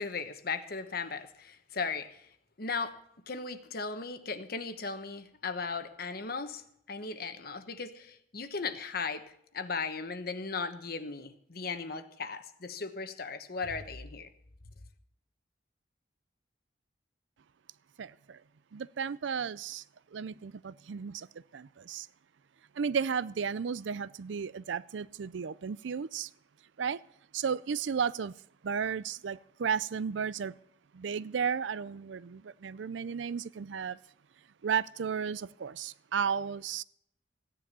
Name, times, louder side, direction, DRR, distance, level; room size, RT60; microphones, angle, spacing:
voice 1, 0.0-2.3 2.6-3.0 3.3-9.2 9.5-14.3, left 4 dB, 55° left, 1.2 m, -37 dB
voice 2, 18.0-18.4 18.7-19.8 20.1-22.1 22.8-26.3 26.8-27.0 27.3-28.3 28.6-30.5 30.9-34.0 34.6-36.8, right 6 dB, 85° right, 0.5 m, -34 dB
15.0 x 10.0 x 6.8 m
head